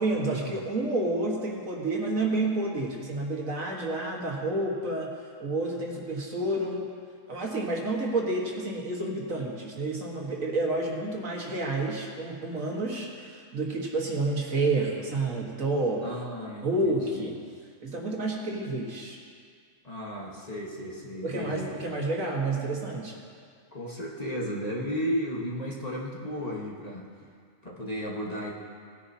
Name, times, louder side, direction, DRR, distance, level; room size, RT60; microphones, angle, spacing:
voice 1, 0.0-5.1 5.4-6.9 7.3-16.1 16.6-17.4 17.8-19.2 21.2-23.2, right 2 dB, 75° right, -1 dB, 1.9 m, -29 dB
voice 2, 16.0-17.3 19.8-21.7 23.7-27.1 27.6-28.5, equal, 30° left, -3 dB, 1.3 m, -34 dB
18.5 x 10.0 x 2.8 m, 2.1 s
omnidirectional pair, 1.4 m